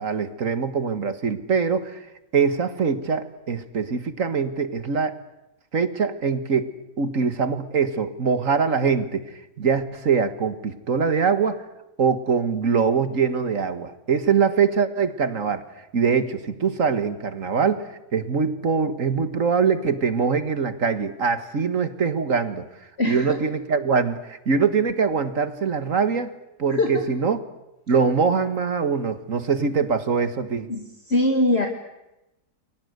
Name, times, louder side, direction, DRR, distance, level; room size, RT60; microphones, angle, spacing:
voice 1, 0.0-2.0 2.3-5.2 5.7-9.2 9.6-11.6 12.0-15.6 15.9-17.9 18.1-22.7 23.0-26.3 26.6-27.4 27.9-30.7, right 5 dB, 55° right, 11 dB, 1.9 m, -23 dB
voice 2, 30.7-31.7, left 2 dB, 40° left, 3 dB, 2.2 m, -22 dB
29.5 x 23.0 x 8.1 m, 0.93 s
omnidirectional pair, 1.7 m